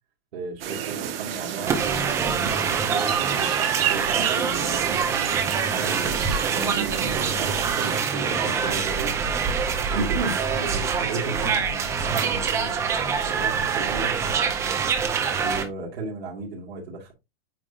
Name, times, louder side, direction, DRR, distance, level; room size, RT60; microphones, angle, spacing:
voice 1, 0.3-5.0 5.7-9.1 9.9-14.1 15.4-17.1, right 3 dB, 90° right, 2.7 m, -34 dB
sound 1, 0.6-8.0, right 10 dB, 65° right, 1.6 m, -30 dB
sound 2, 1.7-15.6, right 6 dB, 10° right, 0.5 m, -25 dB
8.8 x 5.1 x 2.8 m
supercardioid pair, 170°, 31 cm